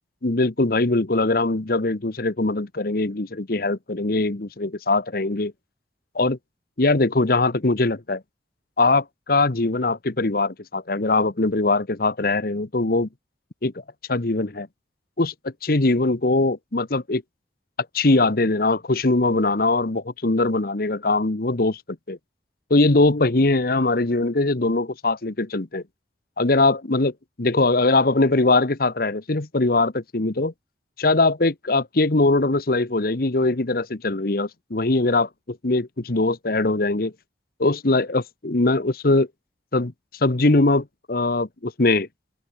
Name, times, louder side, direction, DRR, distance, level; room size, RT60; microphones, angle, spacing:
voice 1, 0.2-5.5 6.1-6.4 6.8-8.2 8.8-13.1 13.6-13.7 14.1-14.7 15.2-17.2 17.9-22.2 22.7-25.8 26.4-27.1 27.4-30.5 31.0-37.1 37.6-39.3 39.7-39.9 40.2-42.1, left 2 dB, 55° left, 1.1 m, -21 dB
open air
head